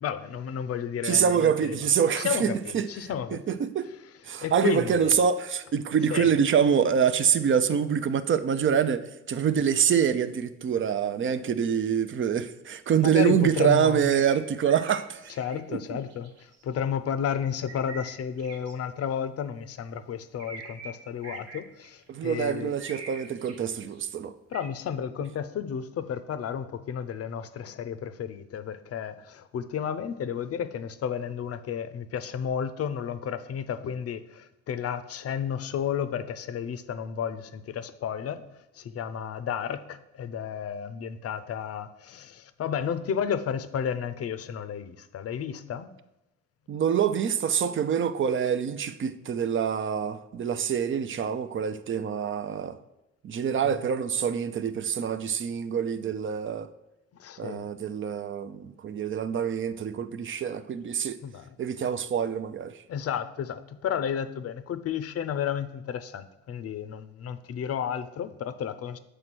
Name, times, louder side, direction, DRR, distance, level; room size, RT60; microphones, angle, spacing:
voice 1, 0.0-1.8 2.2-3.6 4.4-5.2 6.1-6.3 13.0-14.2 15.4-16.3 16.6-22.7 24.5-38.4 38.8-45.9 53.6-53.7 57.2-57.7 61.2-61.5 62.9-69.0, left 8 dB, 50° left, 0.6 m, -32 dB
voice 2, 1.0-2.9 3.3-3.9 4.2-15.3 15.7-16.0 22.1-24.3 46.7-52.8 53.2-56.7 57.4-61.2 61.6-62.8, right 8 dB, 40° right, 0.5 m, -26 dB
sound 1, 14.0-15.6 16.0-16.9 17.7-18.7 20.4-20.9 21.2-24.0 24.5-24.7, right 4 dB, 60° right, 1.0 m, -44 dB
7.5 x 3.3 x 6.1 m
cardioid pair, 90°, 30 cm